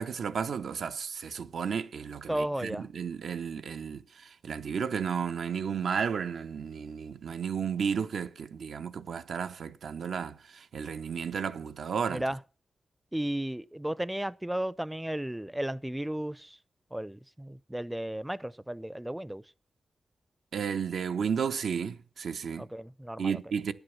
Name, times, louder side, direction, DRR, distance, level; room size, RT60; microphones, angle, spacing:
voice 1, 0.0-12.2 20.5-22.7 23.2-23.7, right 6 dB, 80° right, 0.7 m, -33 dB
voice 2, 2.3-2.9 12.1-12.4 13.1-16.6 16.9-19.4 22.6-23.4, right 1 dB, 10° right, 0.6 m, -34 dB
9.8 x 8.1 x 7.0 m
supercardioid pair, 40°, 0 cm